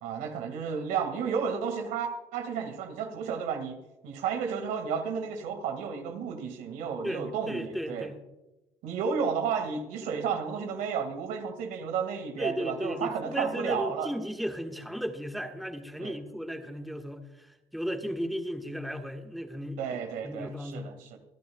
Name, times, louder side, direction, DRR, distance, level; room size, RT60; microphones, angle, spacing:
voice 1, 0.0-3.8 4.0-8.1 8.8-14.1 16.0-16.2 19.8-21.1, right 6 dB, 80° right, 6 dB, 2.0 m, -32 dB
voice 2, 7.0-8.2 12.4-21.1, equal, ahead, 4 dB, 1.5 m, -35 dB
25.0 x 9.2 x 2.3 m, 1.0 s
supercardioid pair, 80°, 14 cm